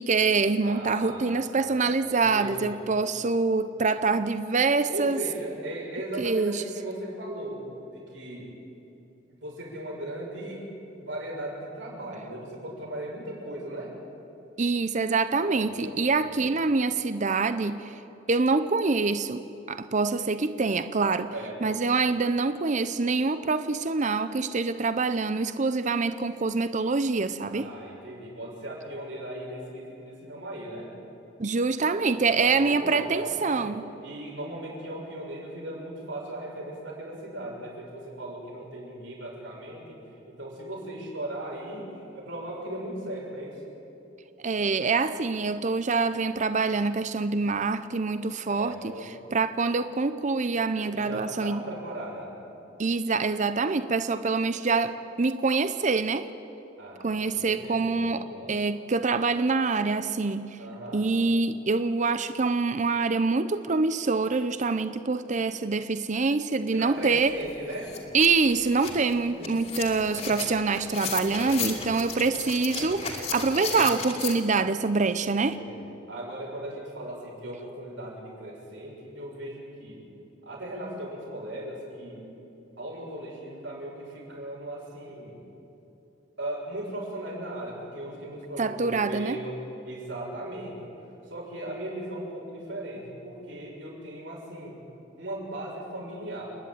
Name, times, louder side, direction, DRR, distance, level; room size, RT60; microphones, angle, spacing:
voice 1, 0.0-5.2 6.2-6.6 14.6-17.9 18.3-19.4 19.7-21.3 21.6-27.7 31.4-33.8 44.4-51.6 52.8-56.3 57.0-60.5 60.9-67.4 68.1-75.6 88.6-89.4, right 4 dB, 40° right, 11 dB, 0.6 m, -25 dB
voice 2, 0.6-2.9 4.9-7.6 7.9-8.5 9.3-10.7 11.0-13.9 15.4-16.6 21.3-21.8 27.5-30.9 32.1-33.7 34.0-40.0 40.3-43.6 48.5-49.1 50.7-52.3 56.8-58.5 60.6-61.1 66.7-67.9 69.2-69.5 71.4-71.9 75.3-80.0 80.5-82.2 82.8-85.4 86.4-90.8 91.3-94.8 95.2-96.5, right 1 dB, 80° right, -3 dB, 6.9 m, -38 dB
sound 1, 67.0-67.1 67.5-74.3, left 5 dB, 35° left, 2.6 m, -35 dB
29.5 x 10.5 x 9.3 m, 3.0 s
head